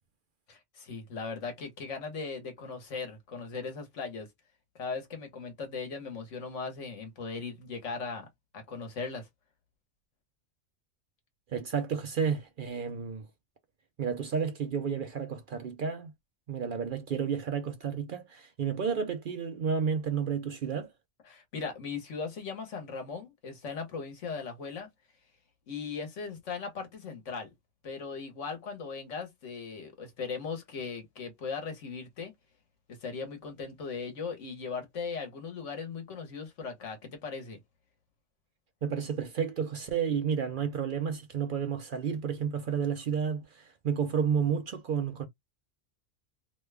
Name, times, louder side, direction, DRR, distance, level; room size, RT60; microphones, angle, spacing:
voice 1, 0.5-4.3 4.8-8.3 8.5-9.3 21.3-24.9 25.7-27.5 27.8-32.3 33.0-37.6, left 5 dB, 80° left, 1.5 m, -38 dB
voice 2, 11.5-13.3 14.0-16.1 16.5-20.9 38.8-45.3, right 7 dB, 55° right, 0.6 m, -31 dB
3.1 x 2.2 x 3.3 m
omnidirectional pair, 1.2 m